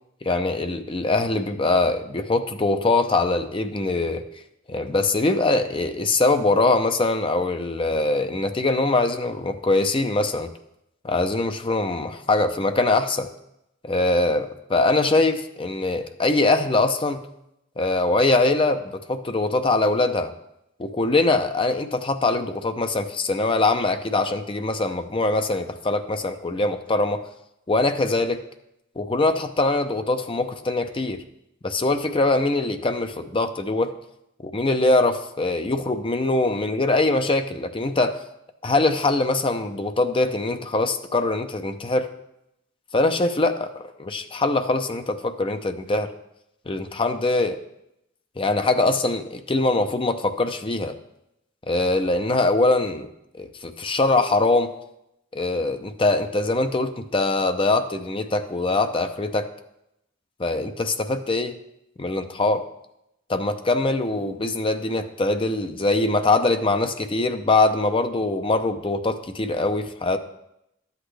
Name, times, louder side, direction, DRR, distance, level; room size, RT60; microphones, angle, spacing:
voice 1, 0.2-4.3 4.7-10.5 11.0-13.3 13.8-17.2 17.8-20.3 20.8-27.2 27.7-28.4 29.0-31.2 31.6-33.9 34.4-38.2 38.6-42.1 42.9-46.1 46.7-47.6 48.4-51.0 51.7-53.1 53.4-54.7 55.3-59.5 60.4-61.6 62.0-62.7 63.3-70.2, left 2 dB, 25° left, 7 dB, 0.6 m, -22 dB
12.0 x 8.1 x 3.3 m, 0.82 s
head